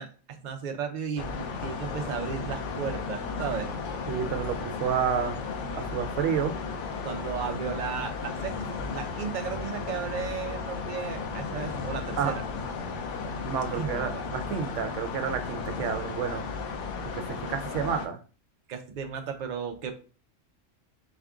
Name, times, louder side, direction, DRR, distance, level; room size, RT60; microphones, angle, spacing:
voice 1, 0.0-1.3 1.6-3.7 7.0-12.4 13.5-14.2 18.7-19.9, right 7 dB, 50° right, 5 dB, 0.5 m, -35 dB
sound 1, 1.2-18.1, left 4 dB, 70° left, 0.9 m, -34 dB
voice 2, 4.1-5.4 5.7-6.5 12.2-12.3 13.5-16.4 17.1-18.2, right 7 dB, 75° right, 8 dB, 0.9 m, -30 dB
4.3 x 2.4 x 3.5 m, 0.36 s
omnidirectional pair, 1.3 m